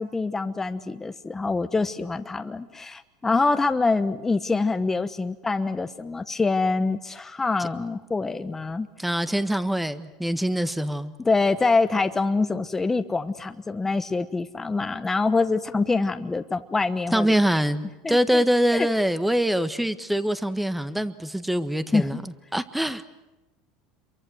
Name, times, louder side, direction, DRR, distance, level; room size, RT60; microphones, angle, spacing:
voice 1, 0.0-8.9 11.2-17.3 18.0-18.4 18.7-18.9 21.9-22.2, left 3 dB, 15° left, 9 dB, 1.0 m, -25 dB
voice 2, 9.0-11.1 17.1-22.2 22.5-23.0, equal, 5° right, 12 dB, 1.4 m, -24 dB
27.5 x 23.5 x 7.9 m, 1.0 s
supercardioid pair, 105°, 2 cm